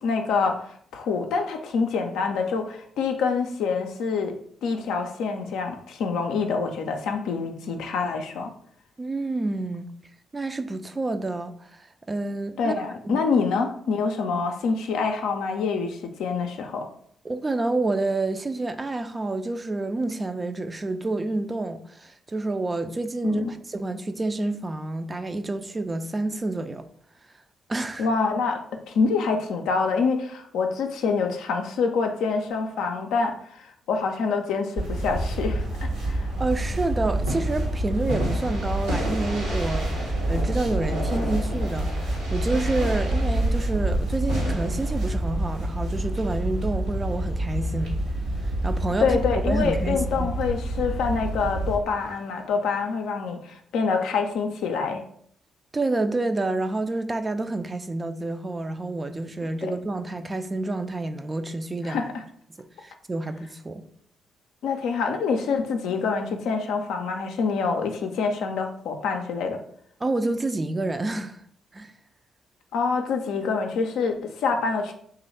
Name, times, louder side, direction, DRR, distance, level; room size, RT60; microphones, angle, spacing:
voice 1, 0.0-4.4 4.6-8.5 12.6-16.9 23.2-23.5 28.0-36.3 49.0-55.0 59.6-59.7 61.8-62.2 64.6-69.6 72.7-74.9, left 5 dB, 70° left, 0.4 m, -26 dB
voice 2, 9.0-9.9 10.3-13.2 17.2-26.8 27.7-28.1 36.4-48.0 48.6-49.2 49.5-50.3 55.7-62.0 62.6-63.8 70.0-71.4 71.7-71.9, right 2 dB, 30° right, 0.4 m, -28 dB
sound 1, 34.8-51.8, right 1 dB, 70° right, 1.2 m, -27 dB
sound 2, 37.3-46.4 52.0-52.4, equal, 90° right, 1.0 m, -34 dB
3.0 x 2.5 x 4.2 m
hypercardioid pair, 40°, 0 cm